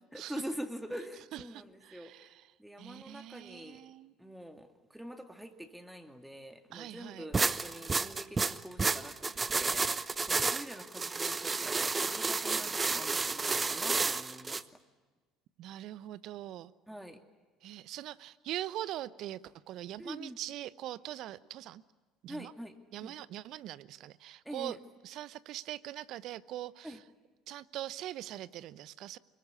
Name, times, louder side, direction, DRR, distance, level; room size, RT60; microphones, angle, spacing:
voice 1, 0.1-2.1 2.6-3.8 4.2-14.6 16.9-17.2 20.0-20.4 22.3-22.8 23.0-23.2 24.4-24.8 26.8-27.0, equal, 5° right, 5 dB, 2.4 m, -45 dB
voice 2, 1.3-2.4 2.8-4.1 6.7-7.3 15.6-16.7 17.6-21.8 22.2-22.5 22.9-24.8 25.0-27.0 27.5-29.2, right 13 dB, 60° right, 18 dB, 0.8 m, -42 dB
sound 1, 7.3-14.6, right 4 dB, 25° right, 0.9 m, -31 dB
24.5 x 22.5 x 9.7 m, 1.3 s
hypercardioid pair, 65°, 0 cm